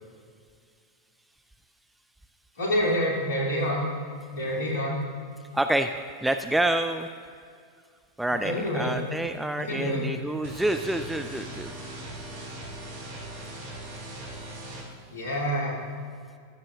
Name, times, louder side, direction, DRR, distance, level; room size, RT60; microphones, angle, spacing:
voice 1, 2.6-3.8 4.3-5.0 8.3-8.9 9.6-10.0 15.1-15.8, equal, 55° left, -2 dB, 2.4 m, -27 dB
voice 2, 5.5-5.9 6.2-7.1 8.2-11.7, right 1 dB, 5° right, 7 dB, 0.3 m, -27 dB
sound 1, 10.4-14.8, right 1 dB, 55° right, 2.2 m, -39 dB
14.0 x 6.8 x 3.5 m, 2.2 s
figure-of-eight pair, 90°, 0 cm